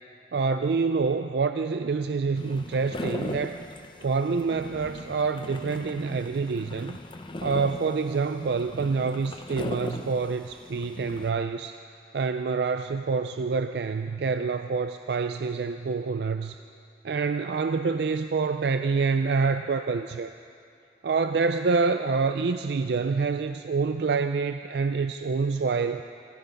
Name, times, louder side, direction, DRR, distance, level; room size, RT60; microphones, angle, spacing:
voice 1, 0.3-3.6 4.0-7.0 7.4-11.8 12.1-16.6 17.0-20.3 21.0-26.0, right 4 dB, 65° right, 9 dB, 0.4 m, -27 dB
sound 1, 2.3-11.3, left 1 dB, 25° left, 0.7 m, -39 dB
18.5 x 15.0 x 5.2 m, 2.5 s
head